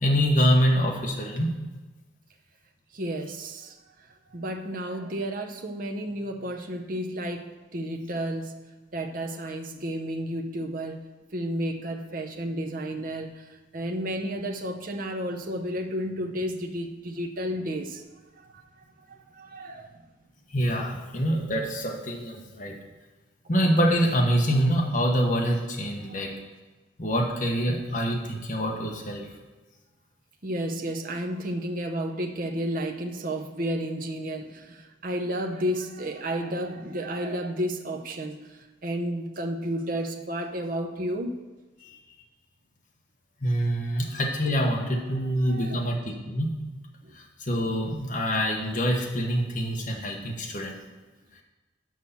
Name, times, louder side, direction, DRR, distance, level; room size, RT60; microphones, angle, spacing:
voice 1, 0.0-1.5 20.5-22.7 23.5-26.3 27.0-29.2 41.8-42.0 43.4-46.5 47.1-50.8, equal, 40° left, -1 dB, 1.1 m, -25 dB
voice 2, 2.9-3.7 4.3-8.5 8.9-11.1 11.3-18.0 18.3-18.6 19.1-20.0 26.1-26.3 30.4-38.4 38.8-41.4 44.8-46.0 47.0-47.1, equal, 45° right, 3 dB, 0.7 m, -32 dB
6.2 x 5.5 x 7.0 m, 1.2 s
head